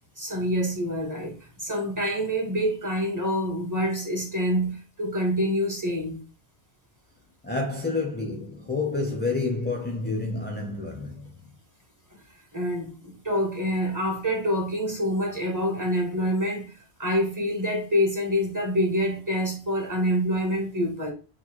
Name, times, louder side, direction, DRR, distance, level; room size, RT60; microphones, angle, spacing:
voice 1, 0.2-6.2 12.5-21.1, equal, 15° right, 1.2 m, -26 dB
voice 2, 7.4-11.4, left 3 dB, 15° left, 0.5 m, -29 dB
6.6 x 2.4 x 3.0 m
omnidirectional pair, 1.1 m